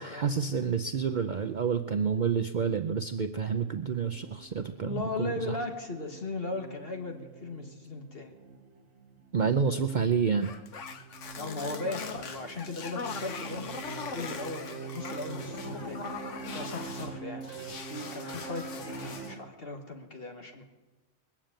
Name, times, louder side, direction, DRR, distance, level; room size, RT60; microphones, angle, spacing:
voice 1, 0.0-5.6 9.3-10.5, right 6 dB, 50° right, 6 dB, 0.6 m, -29 dB
sound 1, 3.7-19.4, right 5 dB, 90° right, 2.0 m, -45 dB
voice 2, 4.8-8.3 11.3-16.1 16.5-17.5 17.8-20.6, left 3 dB, 45° left, 4 dB, 2.0 m, -38 dB
sound 2, 10.4-17.1 17.4-19.4, left 5 dB, 65° left, 1.4 m, -41 dB
21.0 x 7.4 x 8.9 m, 1.1 s
omnidirectional pair, 1.4 m